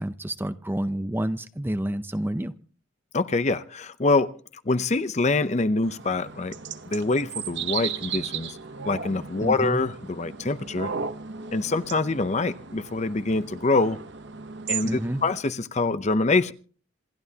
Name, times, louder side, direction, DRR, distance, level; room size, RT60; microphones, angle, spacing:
voice 1, 0.0-2.5 9.4-9.8 14.8-15.3, right 1 dB, 10° right, 11 dB, 0.6 m, -29 dB
voice 2, 3.1-4.3 4.7-6.6 6.9-8.6 8.9-10.9 11.5-14.0 14.7-16.5, left 3 dB, 35° left, 13 dB, 0.6 m, -25 dB
sound 1, 5.8-15.4, right 7 dB, 60° right, 0.9 m, -36 dB
27.0 x 12.0 x 2.8 m, 0.42 s
head